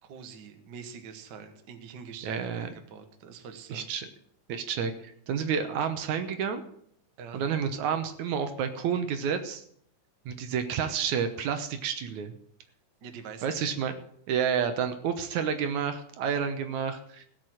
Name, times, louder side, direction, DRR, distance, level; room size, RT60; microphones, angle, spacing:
voice 1, 0.0-3.9 7.2-7.4 13.0-13.5, right 6 dB, 55° right, 7 dB, 1.2 m, -45 dB
voice 2, 2.2-2.7 3.7-4.1 4.5-6.6 7.3-9.6 10.3-12.3 13.4-13.9 14.3-17.2, right 7 dB, 70° right, 9 dB, 2.2 m, -30 dB
17.0 x 6.2 x 7.7 m, 0.68 s
omnidirectional pair, 3.7 m